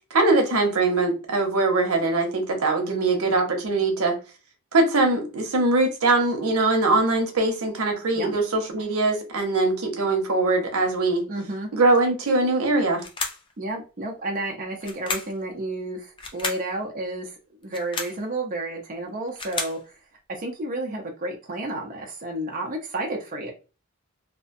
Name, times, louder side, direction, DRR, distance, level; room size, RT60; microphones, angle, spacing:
voice 1, 0.1-4.2 4.7-11.2 11.7-13.0, right 2 dB, 85° right, 0.7 m, -22 dB
voice 2, 2.9-3.3 8.1-8.3 11.3-11.7 13.6-20.0 20.3-23.5, right 2 dB, 40° right, 0.5 m, -31 dB
sound 1, 13.0-13.5 14.8-15.4 16.2-16.7 17.6-18.2 19.1-19.8, left 3 dB, 25° left, 0.4 m, -32 dB
2.5 x 2.1 x 2.5 m
head